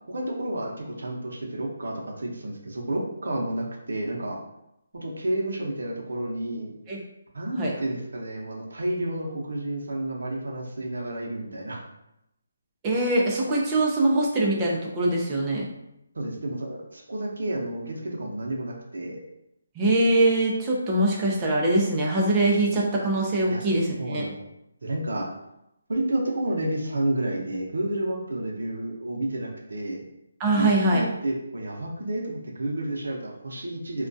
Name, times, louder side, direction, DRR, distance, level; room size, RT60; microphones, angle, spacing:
voice 1, 0.1-4.4 4.9-6.7 7.3-11.8 16.1-19.2 23.5-23.6 24.0-24.3 24.8-25.3 25.9-30.0 30.6-34.1, right 1 dB, 85° right, -1 dB, 0.6 m, -30 dB
voice 2, 12.8-15.7 19.8-24.2 30.4-31.0, right 2 dB, 15° right, -3 dB, 0.4 m, -23 dB
2.2 x 2.2 x 2.5 m, 0.85 s
hypercardioid pair, 170°, 0 cm